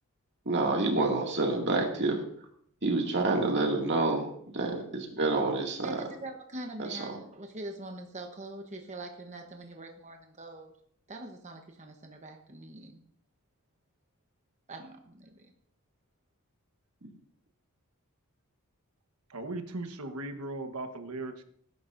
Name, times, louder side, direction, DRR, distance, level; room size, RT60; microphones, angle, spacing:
voice 1, 0.5-2.2 2.8-6.0 6.8-7.1, right 2 dB, 55° right, 1 dB, 2.3 m, -28 dB
voice 2, 5.8-10.7 11.1-13.0 14.7-15.5, right 2 dB, 30° right, 3 dB, 1.0 m, -43 dB
voice 3, 19.3-21.4, right 2 dB, 85° right, 8 dB, 1.2 m, -38 dB
19.0 x 10.5 x 2.6 m, 0.64 s
head